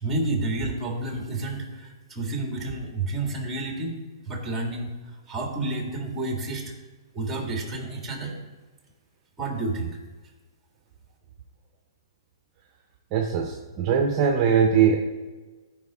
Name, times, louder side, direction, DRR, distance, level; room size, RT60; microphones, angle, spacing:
voice 1, 0.0-4.0 4.3-5.0 5.3-6.7 7.1-8.4 9.4-9.9, right 2 dB, 10° right, 1 dB, 1.8 m, -30 dB
voice 2, 13.1-15.0, right 7 dB, 35° right, 2 dB, 0.7 m, -21 dB
14.5 x 4.9 x 3.6 m, 1.3 s
hypercardioid pair, 145°, 3 cm